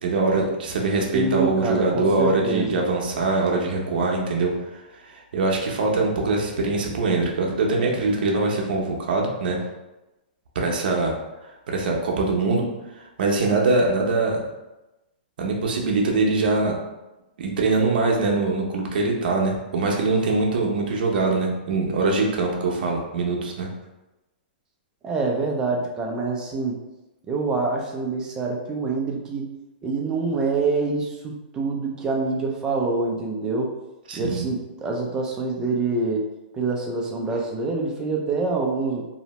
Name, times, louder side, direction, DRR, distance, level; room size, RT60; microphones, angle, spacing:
voice 1, 0.0-4.5 5.1-9.6 10.5-11.1 11.7-12.6 13.2-14.4 15.4-16.8 17.4-23.7 34.1-34.5, right 3 dB, 65° right, 0 dB, 0.7 m, -23 dB
voice 2, 1.1-2.8 25.0-26.8 27.3-29.5 29.8-33.7 34.1-36.2 36.5-39.1, right 3 dB, 15° right, 0 dB, 0.3 m, -26 dB
2.7 x 2.0 x 3.0 m, 1.0 s
hypercardioid pair, 160°, 5 cm